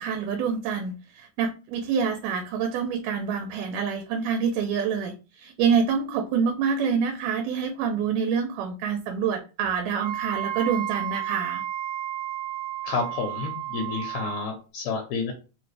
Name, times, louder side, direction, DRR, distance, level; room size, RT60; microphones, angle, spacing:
voice 1, 0.0-11.6, right 6 dB, 85° right, 5 dB, 2.1 m, -27 dB
Wind instrument woodwind instrument, 10.0-14.5, right 13 dB, 55° right, 1.8 m, -32 dB
voice 2, 12.8-15.3, left 5 dB, 75° left, 3 dB, 1.9 m, -30 dB
4.7 x 2.5 x 3.2 m, 0.33 s
omnidirectional pair, 3.6 m